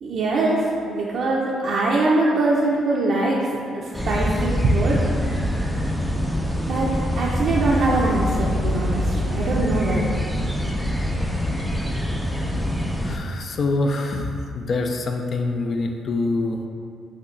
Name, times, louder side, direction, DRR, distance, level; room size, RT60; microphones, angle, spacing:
voice 1, 0.0-3.5 3.7-5.1 6.7-10.0, right 2 dB, 65° right, -6 dB, 0.5 m, -22 dB
sound 1, 3.9-13.2, equal, ahead, 0.4 m, -24 dB
voice 2, 13.0-14.3 14.5-16.6, left 3 dB, 55° left, 3 dB, 0.5 m, -25 dB
5.8 x 2.8 x 3.2 m, 2.5 s
cardioid pair, 90°, 0 cm